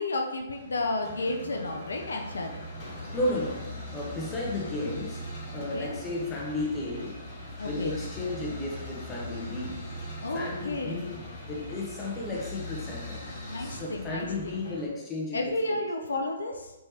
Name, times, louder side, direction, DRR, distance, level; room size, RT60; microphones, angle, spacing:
voice 1, 0.0-2.6 5.5-6.0 7.6-8.0 10.2-11.0 13.5-14.8 15.3-16.7, left 2 dB, 75° left, 3 dB, 0.4 m, -32 dB
sound 1, 0.5-14.9, left 1 dB, 40° left, 1.0 m, -40 dB
voice 2, 3.1-7.2 7.6-9.9 10.3-15.8, left 2 dB, 20° left, -3 dB, 0.8 m, -34 dB
3.4 x 3.0 x 2.8 m, 1.0 s
figure-of-eight pair, 125°, 0 cm